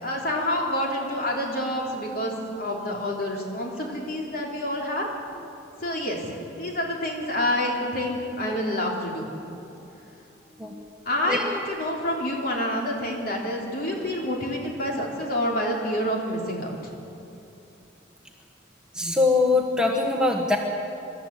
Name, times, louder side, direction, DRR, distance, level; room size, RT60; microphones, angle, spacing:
voice 1, 0.0-5.1 5.8-9.3 11.1-16.8, left 1 dB, 50° left, -1 dB, 3.5 m, -28 dB
voice 2, 18.9-20.6, left 3 dB, 5° right, 0 dB, 1.3 m, -22 dB
24.5 x 13.0 x 8.3 m, 2.8 s
head